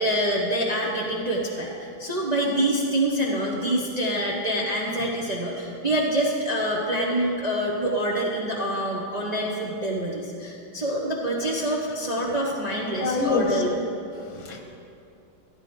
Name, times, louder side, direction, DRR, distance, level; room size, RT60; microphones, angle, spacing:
voice 1, 0.0-13.8, right 1 dB, 35° right, -3 dB, 0.7 m, -26 dB
voice 2, 13.0-13.6 14.2-14.6, left 3 dB, 80° left, 2 dB, 2.1 m, -25 dB
13.5 x 10.0 x 3.7 m, 2.6 s
omnidirectional pair, 2.2 m